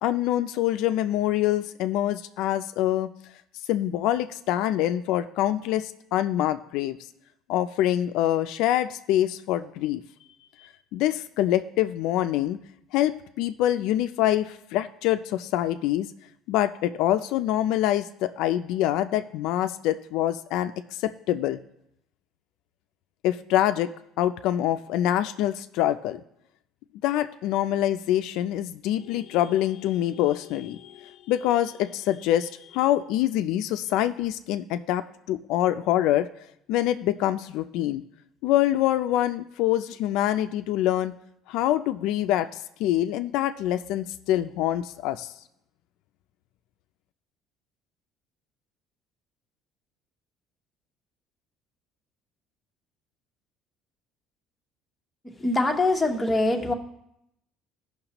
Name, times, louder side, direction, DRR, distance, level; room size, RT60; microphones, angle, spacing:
voice 1, 0.0-3.1 3.7-7.0 7.5-10.0 10.6-12.6 12.9-16.1 16.5-21.6 23.2-23.9 24.2-26.2 27.0-36.3 36.7-38.0 38.4-41.1 41.5-45.3, left 13 dB, 70° left, 10 dB, 0.3 m, -25 dB
voice 2, 55.4-56.7, left 2 dB, 5° left, 1 dB, 0.9 m, -23 dB
16.0 x 5.7 x 3.0 m, 0.79 s
cardioid pair, 160°, 0 cm